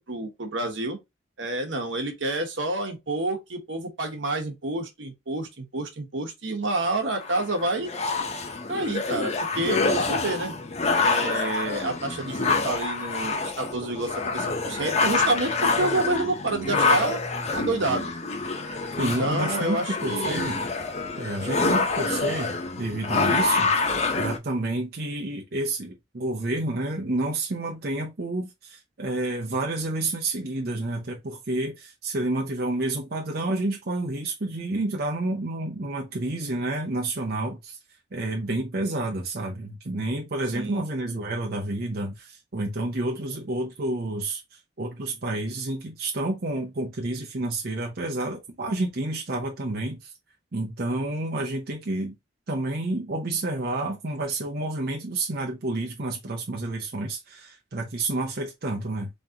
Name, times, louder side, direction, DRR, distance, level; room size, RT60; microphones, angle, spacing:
voice 1, 0.1-1.0 1.4-7.9 8.7-10.5 11.0-17.2 17.5-18.1 19.0-20.5 40.5-40.8, right 2 dB, 75° right, 1.2 m, -29 dB
sound 1, 7.2-24.4, left 3 dB, 35° left, 0.6 m, -26 dB
voice 2, 19.0-20.6 21.2-37.8 38.1-50.1 50.5-52.1 52.5-59.1, right 2 dB, 55° right, 0.7 m, -29 dB
3.7 x 3.1 x 2.8 m
head